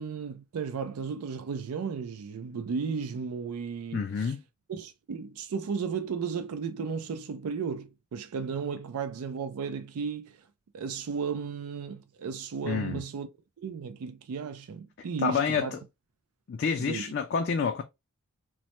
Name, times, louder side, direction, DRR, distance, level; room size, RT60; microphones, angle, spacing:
voice 1, 0.0-4.3 4.7-10.4 10.7-13.3 13.6-15.8 16.8-17.1, right 5 dB, 85° right, 0.4 m, -34 dB
voice 2, 3.9-4.4 12.6-13.0 15.2-15.8 16.5-17.8, left 6 dB, 50° left, 0.3 m, -28 dB
3.1 x 2.1 x 2.9 m
head